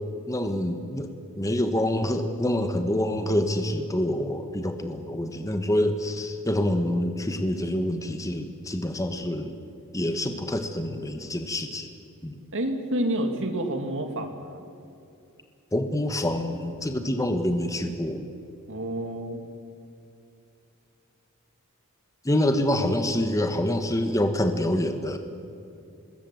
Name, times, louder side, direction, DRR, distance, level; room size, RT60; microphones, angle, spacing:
voice 1, 0.3-1.1 1.4-9.5 9.9-11.9 12.2-12.4 15.7-18.3 22.2-25.2, left 1 dB, 15° left, 7 dB, 1.3 m, -26 dB
voice 2, 12.5-14.6 18.7-19.4, right 1 dB, 60° right, 5 dB, 2.6 m, -29 dB
26.0 x 21.0 x 7.7 m, 2.6 s
head